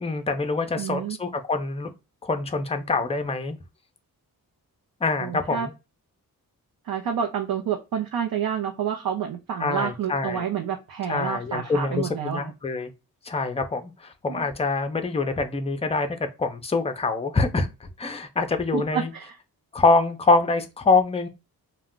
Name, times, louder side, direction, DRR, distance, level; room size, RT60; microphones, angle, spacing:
voice 1, 0.0-1.9 2.2-3.6 5.0-5.7 9.6-10.4 11.1-12.9 13.2-19.1 19.7-21.3, left 3 dB, 15° left, 0.4 m, -25 dB
voice 2, 0.8-1.2 5.2-5.7 6.8-12.4 18.7-19.4, right 8 dB, 70° right, 0.6 m, -29 dB
2.3 x 2.2 x 3.5 m
wide cardioid pair, 100°, 36 cm